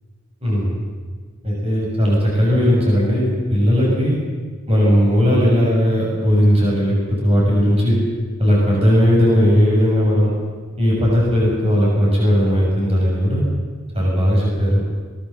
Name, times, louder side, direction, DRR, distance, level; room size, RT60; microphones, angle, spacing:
voice 1, 0.4-0.8 1.4-4.2 4.7-8.0 8.4-10.3 10.8-13.5 13.9-14.8, equal, 30° right, -4 dB, 6.8 m, -17 dB
23.5 x 19.5 x 7.2 m, 1.5 s
head